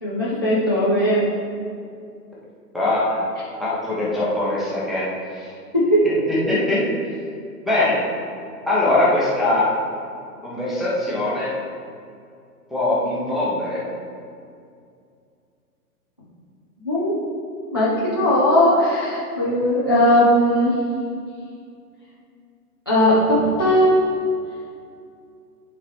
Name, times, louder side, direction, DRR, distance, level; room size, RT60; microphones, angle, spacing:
voice 1, 0.0-1.3 5.7-6.1 16.8-17.1 17.7-20.8 22.9-24.0, equal, 15° left, -9 dB, 0.3 m, -18 dB
voice 2, 2.7-3.3 3.6-5.1 5.3-5.5 6.0-6.8 7.6-8.0 8.7-9.7 10.4-11.5 12.7-13.8, left 2 dB, ahead, -8 dB, 0.8 m, -22 dB
11.0 x 3.8 x 3.3 m, 2.3 s
figure-of-eight pair, 125°, 48 cm